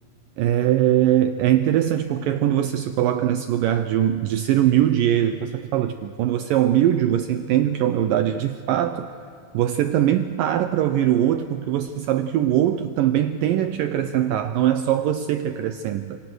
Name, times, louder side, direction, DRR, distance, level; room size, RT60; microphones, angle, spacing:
voice 1, 0.4-9.1 9.5-16.2, right 11 dB, 85° right, 9 dB, 1.9 m, -21 dB
28.0 x 26.0 x 6.3 m, 2.4 s
omnidirectional pair, 4.8 m